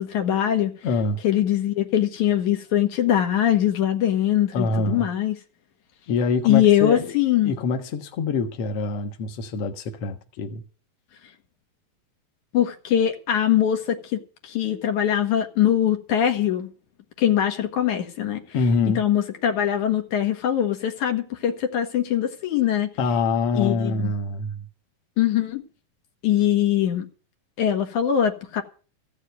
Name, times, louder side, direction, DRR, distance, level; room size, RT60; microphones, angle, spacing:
voice 1, 0.0-0.7 1.2-5.4 6.4-7.5 12.5-16.7 17.2-18.4 19.0-22.9 23.6-24.1 25.2-25.6 26.2-27.1 27.6-28.6, left 10 dB, 80° left, 3.2 m, -22 dB
voice 2, 0.8-1.2 4.5-5.1 6.1-7.2 7.4-10.6 18.5-19.0 23.0-24.7, left 4 dB, 55° left, 2.2 m, -25 dB
15.0 x 6.5 x 9.3 m
omnidirectional pair, 3.4 m